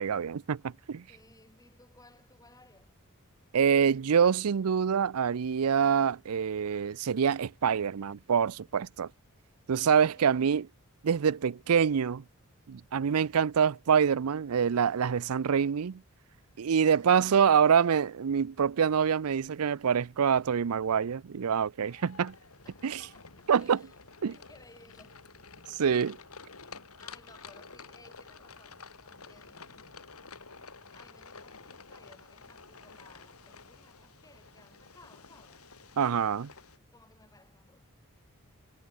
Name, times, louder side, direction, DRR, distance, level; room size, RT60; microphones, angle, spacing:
voice 1, 0.0-1.0 3.5-9.1 9.7-10.6 11.0-12.2 12.7-16.0 16.6-22.3 22.8-23.0 23.5-23.8 24.2-24.4 25.8-26.2 36.0-36.5, right 7 dB, 80° right, 0.5 m, -26 dB
voice 2, 1.1-3.0 10.2-10.5 16.9-17.5 22.6-25.9 26.6-30.0 30.9-35.6 36.9-37.8, left 2 dB, 15° left, 7.4 m, -59 dB
sound 1, 21.8-36.8, left 5 dB, 80° left, 4.2 m, -51 dB
head